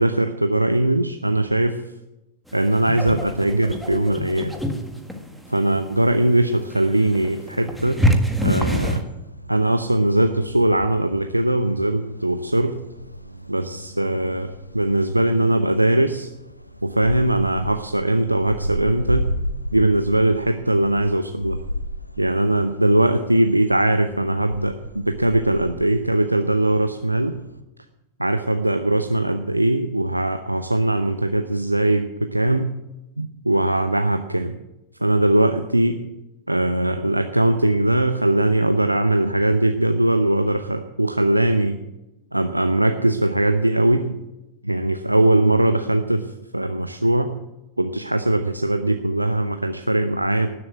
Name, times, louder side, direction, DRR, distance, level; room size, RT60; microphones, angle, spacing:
voice 1, 0.0-1.8 2.5-4.5 5.5-8.0 8.4-9.0 9.5-12.8 13.5-16.3 16.8-19.2 19.7-21.6 22.2-27.4 28.2-32.7 33.2-34.6 35.0-36.0 36.5-41.8 42.3-44.2 44.6-46.3 46.5-47.3 47.8-50.5, right 1 dB, 85° right, 7 dB, 0.7 m, -20 dB
sound 1, 2.5-9.0, equal, ahead, 1.8 m, -26 dB
sound 2, 7.8-27.6, equal, 90° left, 0.9 m, -35 dB
18.5 x 7.9 x 8.4 m, 0.97 s
figure-of-eight pair, 90°, 0 cm